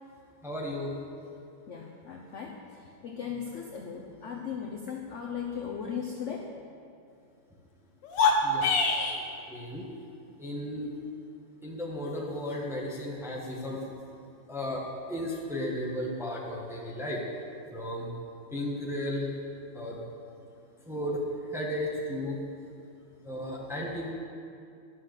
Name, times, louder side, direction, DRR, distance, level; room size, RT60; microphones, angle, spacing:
voice 1, 0.4-0.9 8.4-8.7 9.5-9.9 10.4-10.9 11.6-13.8 14.5-17.2 17.7-18.1 18.5-19.3 19.7-20.0 20.8-21.2 21.5-22.4 23.2-24.1, left 1 dB, ahead, -3 dB, 1.1 m, -34 dB
voice 2, 1.7-2.5 3.0-6.5, left 7 dB, 55° left, -2 dB, 0.9 m, -37 dB
sound 1, 8.0-9.2, left 4 dB, 70° left, 1.6 m, -24 dB
11.5 x 5.8 x 6.6 m, 2.5 s
omnidirectional pair, 2.0 m